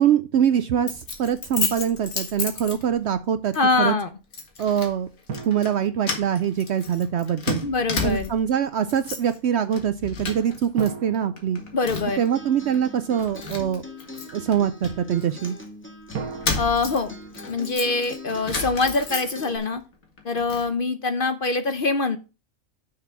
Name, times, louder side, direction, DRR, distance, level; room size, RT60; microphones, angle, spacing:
voice 1, 0.0-3.9 4.6-5.1 5.5-7.6 8.0-11.6 12.2-13.8 14.3-15.6, right 9 dB, 65° right, 12 dB, 0.7 m, -23 dB
Keys jangling, 0.9-3.2 3.5-3.7 4.3-4.9 5.3-5.7 6.0-8.5 8.8-9.4 9.7-10.9 11.1-12.3 12.7-12.8 13.2-15.5 16.1-19.7 20.0-20.7, left 4 dB, 70° left, 2.1 m, -32 dB
voice 2, 3.5-4.1 7.6-8.3 11.7-12.2 16.6-17.2 17.5-19.8 20.2-22.2, left 3 dB, 50° left, 10 dB, 0.8 m, -24 dB
sound 1, 5.3-6.9 10.8-12.7 16.1-18.4, right 5 dB, 85° right, 1.5 m, -39 dB
Acoustic guitar, 11.6-19.6, left 1 dB, 10° left, 1.7 m, -42 dB
6.7 x 5.7 x 5.8 m, 0.31 s
omnidirectional pair, 1.5 m